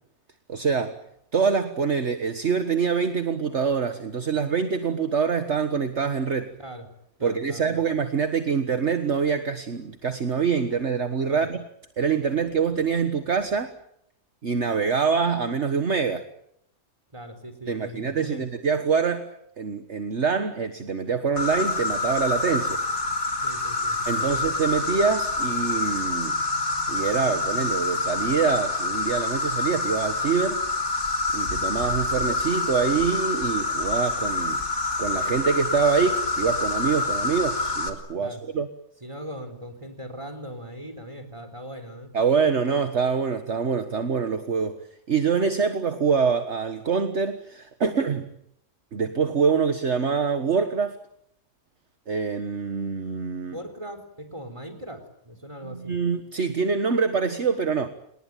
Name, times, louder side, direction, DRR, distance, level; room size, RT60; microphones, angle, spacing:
voice 1, 0.5-1.0 1.3-6.5 7.2-11.6 12.0-13.7 14.4-16.2 17.7-22.8 24.1-26.4 26.9-30.6 31.3-34.6 35.0-38.7 42.1-44.8 45.1-48.3 48.9-51.0 52.1-53.6 55.6-57.9, right 5 dB, 50° right, 9 dB, 1.7 m, -25 dB
voice 2, 7.2-7.8 11.3-11.5 17.1-18.5 23.4-24.5 38.2-38.4 39.0-42.1 53.5-56.0, equal, 20° right, 4 dB, 4.2 m, -40 dB
Insect, 21.4-37.9, left 3 dB, 65° left, 3.7 m, -27 dB
29.0 x 20.0 x 9.2 m, 0.75 s
omnidirectional pair, 1.6 m